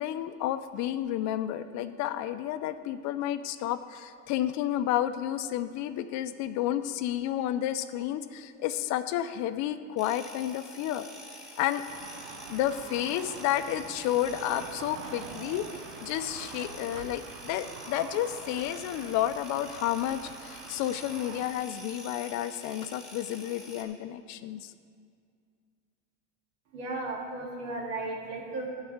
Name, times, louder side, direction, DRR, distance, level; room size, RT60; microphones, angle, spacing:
voice 1, 0.0-11.1 11.6-11.8 12.5-15.7 16.0-24.7, left 12 dB, 50° left, 11 dB, 0.5 m, -31 dB
sound 1, 10.0-23.8, left 1 dB, ahead, 1.4 m, -47 dB
sound 2, 11.9-21.5, right 6 dB, 85° right, 0.9 m, -45 dB
voice 2, 26.7-28.7, right 2 dB, 70° right, -1 dB, 2.2 m, -35 dB
12.0 x 4.1 x 7.9 m, 2.2 s
supercardioid pair, 130°, 39 cm